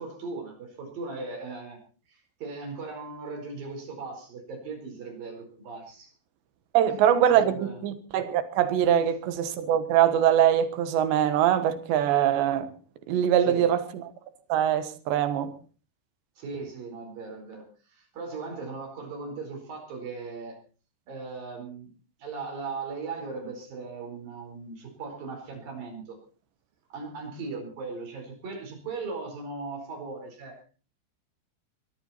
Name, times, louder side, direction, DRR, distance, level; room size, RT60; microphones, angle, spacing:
voice 1, 0.0-1.8 2.1-6.1 7.3-7.8 13.4-13.6 16.4-20.6 21.1-21.9 22.2-26.2 26.9-30.6, right 4 dB, 55° right, 6.2 m, -38 dB
voice 2, 6.7-12.7 13.1-14.1 14.5-15.5, right 10 dB, 85° right, 3.6 m, -23 dB
21.0 x 13.5 x 4.3 m
omnidirectional pair, 5.0 m